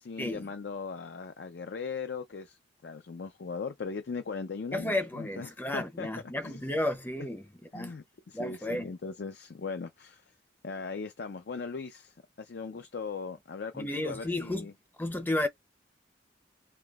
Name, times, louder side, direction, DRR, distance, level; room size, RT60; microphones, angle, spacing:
voice 1, 0.0-6.1 6.4-6.6 7.2-7.3 7.7-10.2 10.6-14.7, left 5 dB, 65° left, 0.4 m, -39 dB
voice 2, 4.7-7.5 7.7-8.0 8.3-8.9 13.7-14.7 15.0-15.5, left 1 dB, 10° left, 0.6 m, -32 dB
5.5 x 2.7 x 2.4 m
head